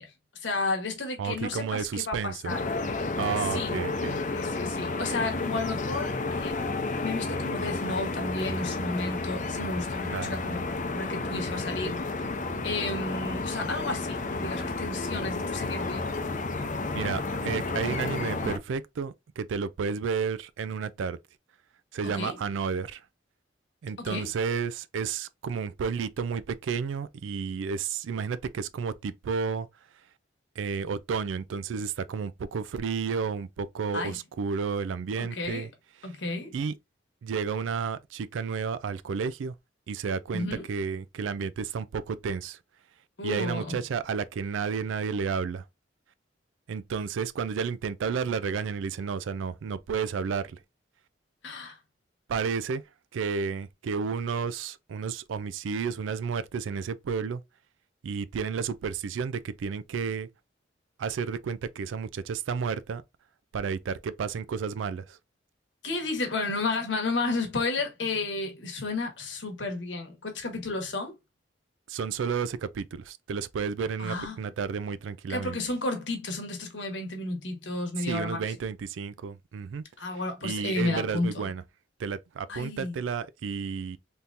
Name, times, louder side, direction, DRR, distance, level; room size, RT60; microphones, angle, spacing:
voice 1, 0.0-2.6 3.5-3.7 4.3-6.6 7.0-10.6 10.9-12.0 12.6-16.1 22.0-22.4 24.0-24.3 33.9-34.2 35.2-35.7 36.0-36.5 40.3-40.7 43.2-43.7 51.4-51.8 65.8-71.2 74.0-74.4 75.3-78.4 80.0-81.5 82.5-82.9, left 3 dB, 70° left, 1.1 m, -32 dB
voice 2, 1.2-2.5 3.2-4.2 10.1-10.4 16.9-21.2 21.9-23.0 23.8-29.7 30.6-35.7 36.5-36.7 37.2-39.5 39.9-42.6 43.2-45.6 46.7-50.6 52.3-52.8 53.1-57.4 58.0-60.3 61.0-63.0 63.5-65.2 71.9-75.6 78.0-79.8 80.4-81.6 82.0-84.0, right 5 dB, 85° right, 0.4 m, -31 dB
sound 1, 2.5-18.6, left 3 dB, 40° left, 0.5 m, -31 dB
3.6 x 2.8 x 2.5 m
head